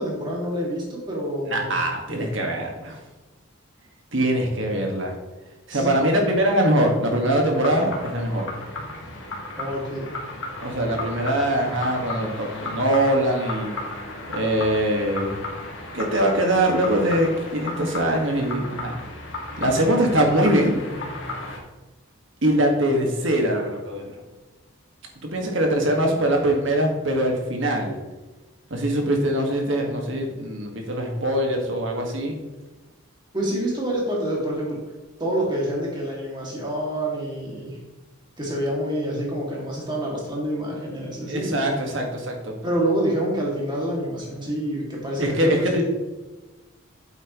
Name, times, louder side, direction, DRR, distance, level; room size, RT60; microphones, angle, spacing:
voice 1, 0.0-1.7 2.1-2.3 5.7-5.9 9.6-10.2 33.3-34.8 35.2-37.8 38.4-41.7 42.6-45.5, right 1 dB, 20° right, -4 dB, 2.5 m, -27 dB
voice 2, 1.5-3.0 4.1-5.1 5.7-8.5 10.6-13.7 14.3-15.4 15.9-19.0 19.6-20.8 22.4-24.1 25.2-28.0 28.7-32.4 41.3-42.5 45.2-45.8, right 1 dB, 60° right, 1 dB, 1.9 m, -22 dB
sound 1, 7.5-21.6, left 2 dB, 60° left, 1.8 m, -34 dB
8.8 x 7.9 x 3.1 m, 1.2 s
head